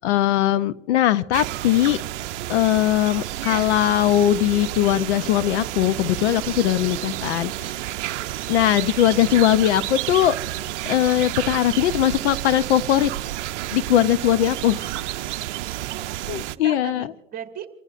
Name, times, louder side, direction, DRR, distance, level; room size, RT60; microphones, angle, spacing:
voice 1, 0.0-2.0 2.5-7.8 8.5-10.3 10.9-13.1 13.7-14.9 16.3-17.0, left 12 dB, 60° left, 15 dB, 0.7 m, -20 dB
sound 1, 1.3-16.6, right 15 dB, 65° right, 0.6 m, -30 dB
voice 2, 14.6-15.3 15.9-17.7, right 9 dB, 25° right, 4 dB, 1.7 m, -40 dB
28.5 x 15.5 x 2.5 m, 1.1 s
hypercardioid pair, 125°, 38 cm